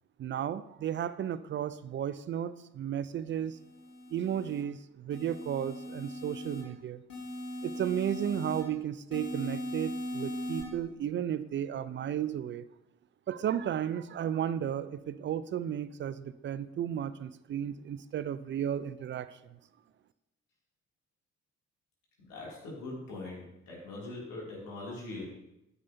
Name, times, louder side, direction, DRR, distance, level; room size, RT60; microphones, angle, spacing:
voice 1, 0.2-3.6 4.1-7.0 7.6-12.7 13.3-19.4, right 10 dB, 35° right, 15 dB, 0.4 m, -34 dB
sound 1, 3.5-4.6 5.1-6.6 7.1-8.6 9.1-10.6, left 1 dB, 85° left, 1.4 m, -39 dB
voice 2, 22.2-25.2, left 2 dB, 65° left, -4 dB, 2.6 m, -42 dB
9.5 x 8.0 x 2.7 m, 0.90 s
figure-of-eight pair, 40°, 36 cm